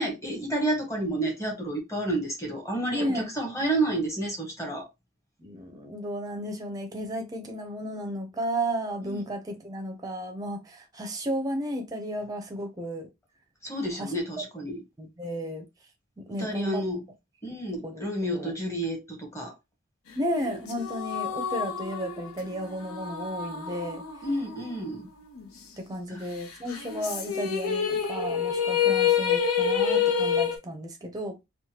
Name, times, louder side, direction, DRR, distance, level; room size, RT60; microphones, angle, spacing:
voice 1, 0.0-4.9 9.0-9.2 13.6-14.8 16.4-17.0 17.4-19.5 24.2-25.1 26.1-26.3, right 1 dB, 15° left, 0.9 m, -30 dB
voice 2, 2.9-3.3 5.4-13.1 13.9-14.1 15.0-15.7 16.2-16.8 17.8-18.0 18.3-18.5 20.2-24.0 25.8-31.4, equal, 15° right, 0.5 m, -33 dB
sound 1, 20.4-25.0 25.3-25.4 26.7-30.6, left 7 dB, 90° left, 0.6 m, -28 dB
3.2 x 2.2 x 2.8 m
head